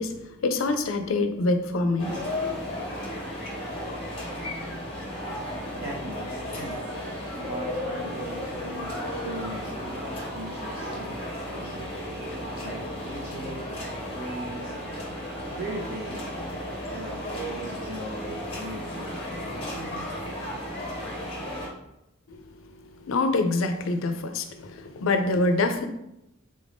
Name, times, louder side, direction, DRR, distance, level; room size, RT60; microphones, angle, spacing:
voice 1, 0.0-2.6 22.3-25.9, left 2 dB, 85° left, 7 dB, 0.4 m, -26 dB
sound 1, 2.0-21.7, left 1 dB, 25° left, 0.8 m, -34 dB
voice 2, 5.7-6.9 7.3-11.9 12.6-14.7 15.5-16.2 16.9-20.1, right 1 dB, 55° right, -7 dB, 0.7 m, -39 dB
3.7 x 2.5 x 3.4 m, 0.86 s
head